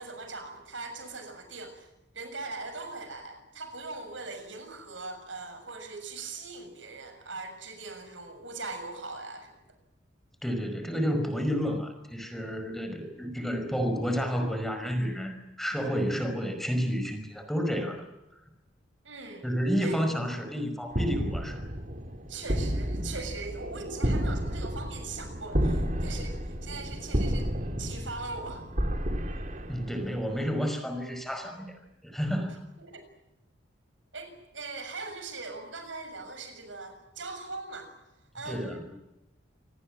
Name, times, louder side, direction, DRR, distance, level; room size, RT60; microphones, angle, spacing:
voice 1, 0.0-1.9 2.1-9.5 19.0-19.4 19.8-20.0 22.3-27.5 27.8-28.6 32.8-33.0 34.1-37.9 38.3-39.0, right 3 dB, 90° right, 7 dB, 6.8 m, -40 dB
voice 2, 10.4-18.0 19.4-21.6 29.7-31.7 32.0-32.6 38.5-38.9, equal, ahead, 6 dB, 5.2 m, -30 dB
sound 1, 20.9-30.4, equal, 45° right, 3.6 m, -31 dB
28.5 x 19.5 x 8.9 m, 0.95 s
head